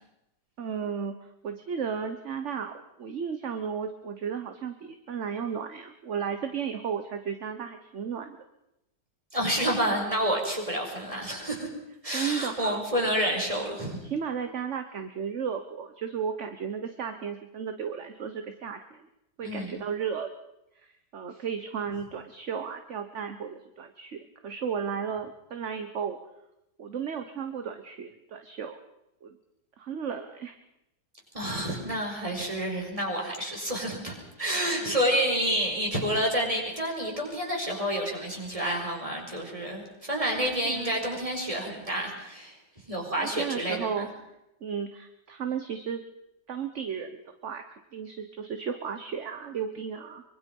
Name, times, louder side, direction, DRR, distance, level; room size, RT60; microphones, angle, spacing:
voice 1, 0.6-8.4 12.1-12.8 14.0-19.1 19.4-20.3 20.8-26.2 26.8-28.8 29.2-29.4 29.8-30.6 34.8-35.0 40.6-41.0 43.2-44.1 44.6-46.0 46.5-47.6 47.9-50.2, right 7 dB, 45° right, 7 dB, 1.3 m, -34 dB
voice 2, 9.3-11.7 12.0-14.0 19.4-19.7 31.3-42.6 42.9-44.1, equal, 20° right, 0 dB, 5.3 m, -29 dB
24.5 x 23.5 x 5.4 m, 0.88 s
omnidirectional pair, 1.8 m